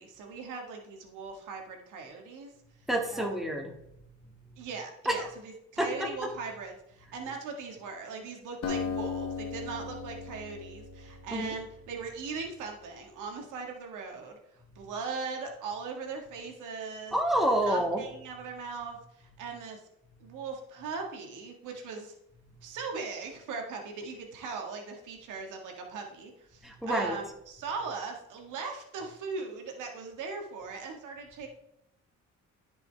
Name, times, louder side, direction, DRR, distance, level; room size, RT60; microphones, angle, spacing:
voice 1, 0.0-2.5 3.1-3.4 4.6-17.2 17.7-19.8 20.2-22.2 22.6-31.5, right 4 dB, 90° right, 3 dB, 1.6 m, -39 dB
voice 2, 2.9-3.7 5.1-5.2 5.8-5.9 11.3-11.5 17.1-18.0 26.6-27.2, right 1 dB, ahead, 2 dB, 1.7 m, -28 dB
Acoustic guitar, 8.6-12.2, left 6 dB, 60° left, 1.5 m, -37 dB
13.5 x 5.4 x 3.3 m, 0.81 s
cardioid pair, 90°, 30 cm